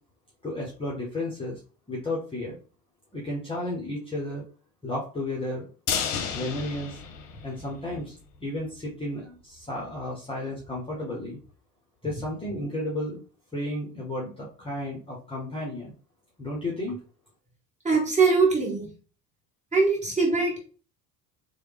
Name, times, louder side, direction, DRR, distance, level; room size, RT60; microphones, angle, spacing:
voice 1, 0.4-1.6 1.9-2.6 3.1-4.4 4.8-5.7 6.3-7.0 7.4-8.1 8.4-11.4 12.0-13.2 13.5-15.9 16.4-17.0, left 1 dB, 10° left, -4 dB, 0.9 m, -33 dB
sound 1, 5.9-8.0 8.3-8.4 8.8-8.9, left 7 dB, 55° left, 0.7 m, -32 dB
voice 2, 17.8-18.9 19.7-20.6, right 4 dB, 15° right, -3 dB, 1.5 m, -22 dB
3.2 x 2.3 x 3.3 m, 0.38 s
hypercardioid pair, 65°, 50 cm